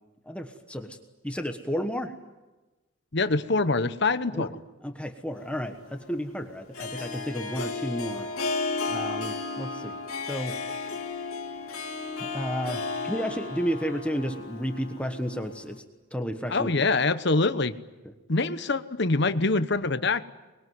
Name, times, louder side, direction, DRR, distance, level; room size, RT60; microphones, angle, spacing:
voice 1, 0.2-1.0 1.2-2.1 4.3-4.5 4.8-8.3 8.9-10.6 12.2-15.8 16.1-16.7 18.0-18.1, equal, 5° left, 5 dB, 1.3 m, -32 dB
voice 2, 3.1-4.5 16.5-17.7 18.3-20.2, left 3 dB, 50° left, 12 dB, 1.0 m, -24 dB
Harp, 5.4-15.8, left 4 dB, 85° left, 2.6 m, -34 dB
25.0 x 21.5 x 9.5 m, 1.1 s
head